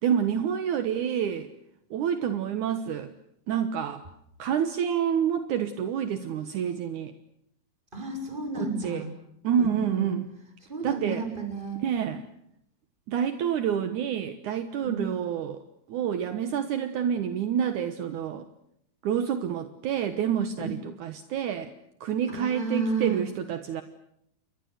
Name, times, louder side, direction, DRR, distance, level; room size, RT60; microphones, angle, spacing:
voice 1, 0.0-1.5 1.9-3.1 3.5-4.0 4.4-7.1 8.5-9.1 9.4-10.3 10.8-11.3 11.8-12.3 13.1-15.6 15.9-18.5 19.0-21.7 22.0-23.8, right 8 dB, 65° right, 10 dB, 1.9 m, -28 dB
voice 2, 7.9-9.1 9.6-10.1 10.7-11.8 14.8-15.0 20.6-20.7 22.3-23.2, right 3 dB, 10° right, 5 dB, 6.6 m, -31 dB
30.0 x 23.5 x 8.1 m, 0.75 s
omnidirectional pair, 5.1 m